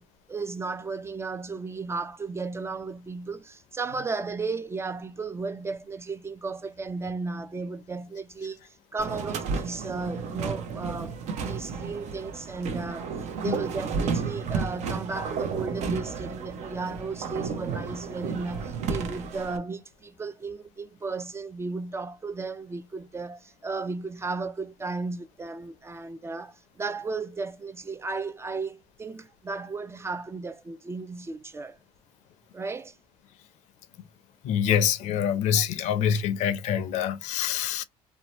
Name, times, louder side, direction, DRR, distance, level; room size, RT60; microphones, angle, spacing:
voice 1, 0.0-13.1 13.4-31.8 32.5-33.0, right 4 dB, 20° right, 0.3 m, -34 dB
sound 1, 9.0-19.6, right 5 dB, 65° right, 0.6 m, -32 dB
voice 2, 34.4-37.8, left 9 dB, 70° left, 0.5 m, -25 dB
2.7 x 2.1 x 2.9 m
supercardioid pair, 90°, 13 cm